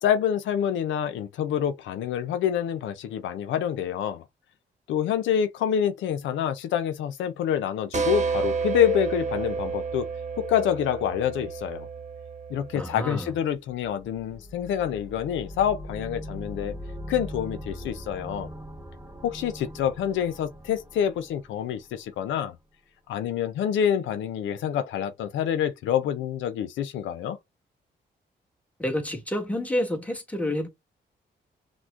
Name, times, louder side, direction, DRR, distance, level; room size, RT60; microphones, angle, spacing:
voice 1, 0.0-4.2 4.9-10.1 10.4-11.9 12.5-16.8 17.1-18.5 19.2-22.6 23.1-27.4, left 9 dB, 90° left, 0.4 m, -27 dB
sound 1, 7.9-13.4, right 5 dB, 35° right, 1.0 m, -31 dB
voice 2, 12.7-13.3 28.8-30.7, left 1 dB, 5° left, 1.4 m, -29 dB
sound 2, 13.6-22.3, equal, 10° right, 1.1 m, -41 dB
5.9 x 2.1 x 2.4 m
cardioid pair, 65°, 19 cm